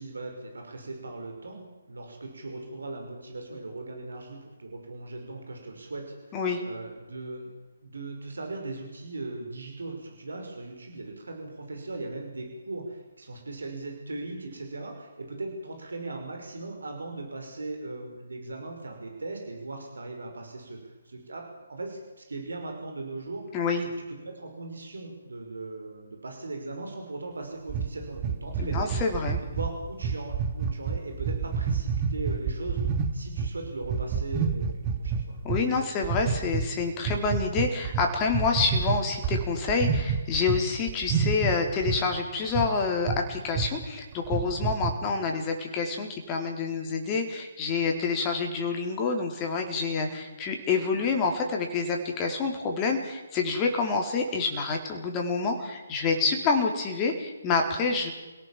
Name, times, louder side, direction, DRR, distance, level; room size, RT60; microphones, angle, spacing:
voice 1, 0.0-6.4 6.6-7.5 7.8-23.4 24.2-28.9 29.4-32.8 33.1-35.4 35.7-35.9 44.9-45.0, right 2 dB, 70° right, 3 dB, 5.7 m, -38 dB
voice 2, 23.5-23.8 28.6-29.4 35.4-58.1, left 4 dB, 20° left, 2 dB, 4.3 m, -27 dB
sound 1, 27.7-33.5 33.8-35.6 36.0-36.7 37.1-40.6 40.9-42.0 42.5-42.7 43.1-43.3 43.6-43.7 44.1-44.9, right 6 dB, 25° right, 2.1 m, -28 dB
28.5 x 17.5 x 7.6 m, 1.2 s
figure-of-eight pair, 140°, 0 cm